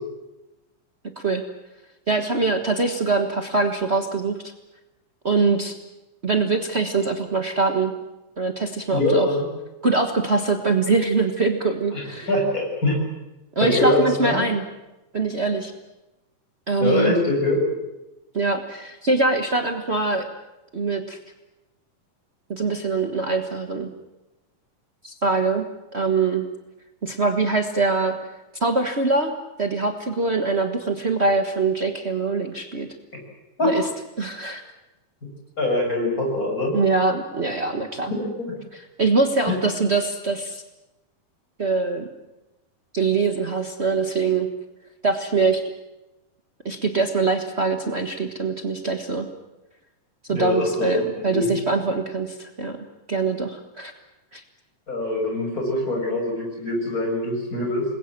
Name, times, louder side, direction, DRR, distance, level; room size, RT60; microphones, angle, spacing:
voice 1, 2.1-4.5 5.2-5.8 6.2-7.9 8.4-9.3 9.8-12.3 13.5-14.6 15.1-15.7 16.7-17.1 18.3-20.3 20.7-21.2 22.5-23.9 25.0-25.6 25.9-26.4 27.0-28.3 28.6-29.3 29.6-32.9 33.6-33.9 34.2-34.6 36.7-38.1 38.7-40.6 41.6-42.1 42.9-44.5 45.0-45.6 46.6-49.3 50.3-52.8 53.1-53.9 54.3-54.4, right 3 dB, 70° right, 5 dB, 0.6 m, -23 dB
voice 2, 8.9-9.5 11.9-12.0 12.3-13.0 13.6-14.4 16.8-17.6 33.6-33.7 35.6-36.8 38.1-38.5 39.5-39.6 50.3-51.5 54.9-57.9, left 2 dB, 25° left, 1 dB, 7.3 m, -23 dB
28.0 x 21.5 x 7.5 m, 0.98 s
omnidirectional pair, 3.8 m